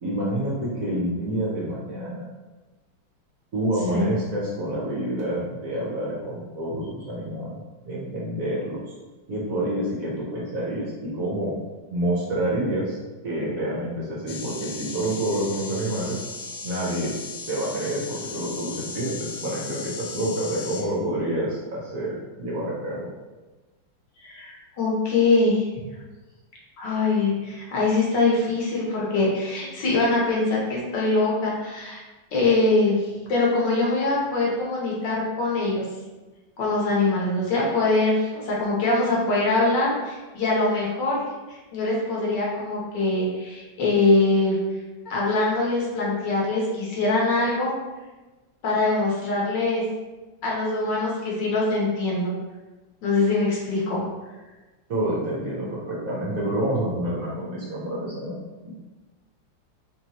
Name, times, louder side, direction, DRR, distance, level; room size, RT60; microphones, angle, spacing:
voice 1, 0.0-2.3 3.5-8.8 9.3-11.5 11.9-13.0 13.2-16.2 16.6-17.2 17.5-23.1 54.9-58.3 58.6-58.9, right 1 dB, 55° right, -6 dB, 1.1 m, -28 dB
sound 1, 14.3-20.8, left 4 dB, 80° left, 0.7 m, -37 dB
voice 2, 24.2-25.7 26.8-32.0 32.3-35.8 36.6-41.2 41.5-44.6 45.1-47.7 48.6-49.8 50.4-52.3 53.0-54.0, left 2 dB, 65° left, -4 dB, 1.6 m, -23 dB
4.2 x 3.2 x 2.9 m, 1.2 s
omnidirectional pair, 2.1 m